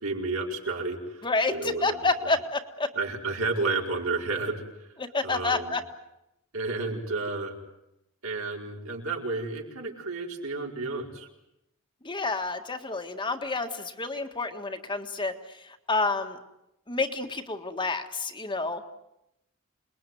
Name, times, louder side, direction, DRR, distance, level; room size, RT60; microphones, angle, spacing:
voice 1, 0.0-2.0 2.9-4.9 5.2-5.7 6.5-7.5 8.2-11.3, right 3 dB, 75° right, 0 dB, 5.0 m, -31 dB
voice 2, 1.2-2.9 5.0-5.8 12.0-15.3 15.9-16.4 16.9-18.8, left 3 dB, 20° left, 5 dB, 1.7 m, -29 dB
27.5 x 21.5 x 9.3 m, 0.85 s
head